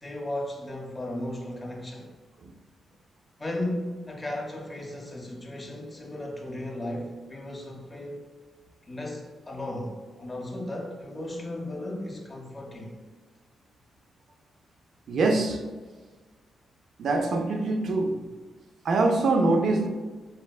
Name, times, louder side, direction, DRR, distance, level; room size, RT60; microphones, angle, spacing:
voice 1, 0.0-2.1 3.4-8.2 8.9-12.9, left 1 dB, 15° left, -1 dB, 0.6 m, -35 dB
voice 2, 15.1-15.6 17.0-18.2 18.8-19.9, right 3 dB, 65° right, 4 dB, 0.4 m, -24 dB
4.3 x 2.0 x 2.3 m, 1.3 s
cardioid pair, 95°, 0 cm